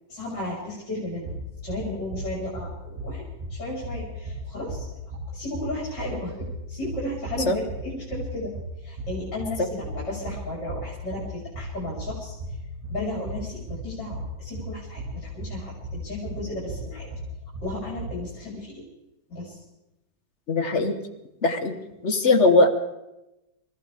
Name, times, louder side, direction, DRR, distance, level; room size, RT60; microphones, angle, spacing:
voice 1, 0.1-1.3 1.6-12.6 12.9-17.1 17.6-18.8 19.3-19.6, left 1 dB, 75° left, -5 dB, 5.0 m, -34 dB
sound 1, 1.1-18.1, equal, 50° right, 7.3 m, -36 dB
voice 2, 20.5-21.0 21.4-22.7, left 2 dB, 45° left, 6 dB, 1.4 m, -20 dB
27.0 x 14.5 x 3.6 m, 0.94 s
omnidirectional pair, 1.9 m